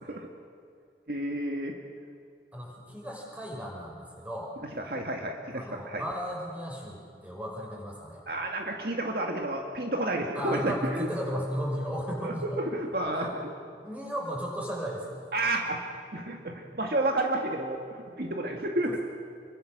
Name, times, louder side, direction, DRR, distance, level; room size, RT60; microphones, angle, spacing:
voice 1, 1.1-1.8 4.8-6.0 8.3-11.1 12.2-13.5 15.3-15.8 16.1-19.0, right 1 dB, 55° right, 1 dB, 2.1 m, -31 dB
voice 2, 2.5-4.5 5.5-8.2 10.3-12.6 13.1-13.3 13.7-15.2, equal, 10° right, -2 dB, 5.6 m, -35 dB
29.0 x 24.0 x 6.7 m, 2.3 s
head